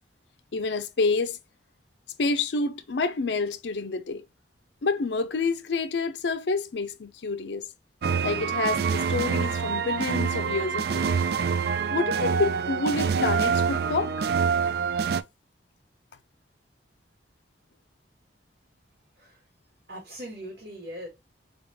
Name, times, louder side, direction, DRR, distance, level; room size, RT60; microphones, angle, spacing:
voice 1, 0.5-1.4 2.2-4.2 4.8-7.7 8.2-11.1 11.9-14.3, left 3 dB, 80° left, 0.6 m, -28 dB
sound 1, 8.0-15.2, right 6 dB, 60° right, 0.3 m, -26 dB
voice 2, 19.9-21.1, equal, 80° right, 2.1 m, -40 dB
4.6 x 3.5 x 2.3 m
head